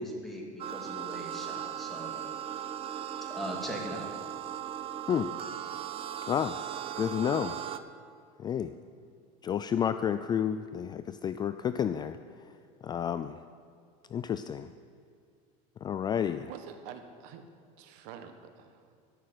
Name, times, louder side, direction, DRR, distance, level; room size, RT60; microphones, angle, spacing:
voice 1, 0.0-2.1 3.3-4.1, equal, ahead, -2 dB, 2.5 m, -39 dB
sound 1, 0.6-7.8, right 10 dB, 35° right, 0.6 m, -38 dB
voice 2, 6.3-6.6 7.0-7.6 8.4-8.7 9.4-12.2 12.8-13.4 14.1-14.7 15.8-16.5, left 8 dB, 25° left, 11 dB, 0.3 m, -30 dB
voice 3, 16.5-17.4 17.8-19.0, right 8 dB, 70° right, 7 dB, 1.3 m, -47 dB
13.5 x 6.6 x 9.2 m, 2.4 s
supercardioid pair, 130°, 18 cm